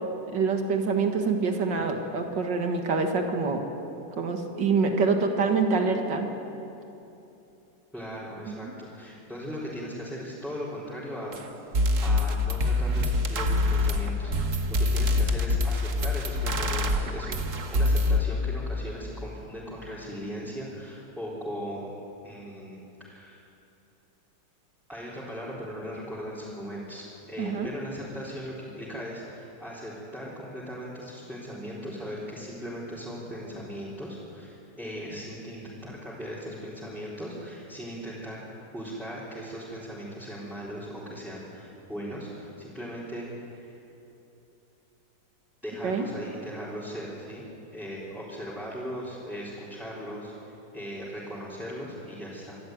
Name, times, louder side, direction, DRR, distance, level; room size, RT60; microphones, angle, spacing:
voice 1, 0.3-3.6 4.2-6.3 8.5-8.7 27.4-27.7 45.8-46.1, right 4 dB, 85° right, 4 dB, 2.5 m, -26 dB
voice 2, 7.9-11.7 12.0-17.4 17.7-22.0 22.2-23.4 24.9-38.4 38.7-43.8 45.6-47.5 47.7-52.6, equal, ahead, -9 dB, 4.1 m, -38 dB
sound 1, 11.3-11.4 11.7-18.2, left 2 dB, 50° right, 1.5 m, -25 dB
26.0 x 13.0 x 9.4 m, 2.9 s
omnidirectional pair, 1.9 m